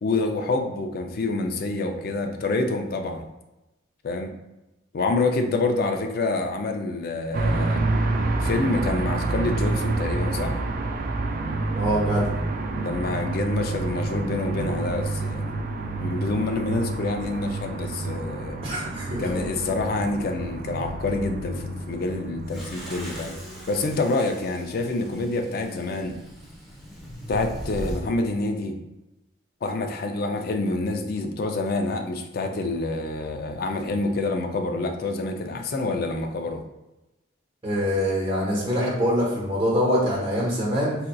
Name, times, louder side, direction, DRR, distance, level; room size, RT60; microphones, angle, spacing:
voice 1, 0.0-3.3 4.0-4.3 4.9-7.8 8.4-10.6 12.8-15.6 16.0-18.6 19.2-23.3 23.7-26.2 27.3-28.8 29.6-36.6, left 2 dB, 50° left, 5 dB, 0.4 m, -27 dB
sound 1, 7.3-23.9, right 2 dB, 45° right, 0.3 m, -28 dB
voice 2, 11.7-12.3 18.6-19.2 37.6-41.0, equal, 30° right, -5 dB, 1.1 m, -24 dB
sound 2, 22.5-28.0, equal, ahead, 0.8 m, -39 dB
4.2 x 2.5 x 2.2 m, 0.99 s
head